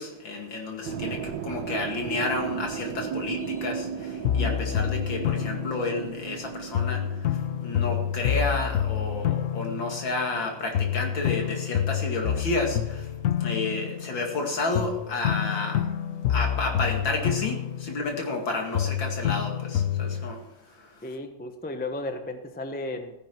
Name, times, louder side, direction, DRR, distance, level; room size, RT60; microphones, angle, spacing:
voice 1, 0.0-13.1 13.4-15.9 16.3-21.1, left 2 dB, 65° left, 3.0 m, -31 dB
sound 1, 0.8-8.4, right 7 dB, 70° right, 1.4 m, -35 dB
sound 2, 4.2-6.4 6.7-10.5 10.7-14.4 14.7-18.5 18.7-20.3, left 10 dB, 90° left, 0.7 m, -28 dB
voice 2, 21.0-23.1, left 2 dB, 10° left, 0.6 m, -34 dB
15.0 x 10.5 x 4.6 m
omnidirectional pair, 2.2 m